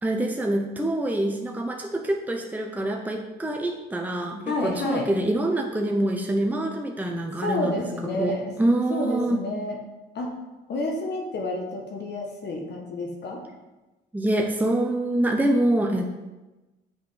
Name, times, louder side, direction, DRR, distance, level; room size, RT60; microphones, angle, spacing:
voice 1, 0.0-7.8 8.2-9.4 14.1-16.1, right 1 dB, 10° right, 1 dB, 0.8 m, -25 dB
voice 2, 4.5-5.1 7.4-8.4 8.9-9.8 10.1-10.3 10.7-13.4, left 1 dB, 60° left, 0 dB, 1.4 m, -29 dB
6.5 x 5.3 x 6.3 m, 1.1 s
cardioid pair, 90°, 20 cm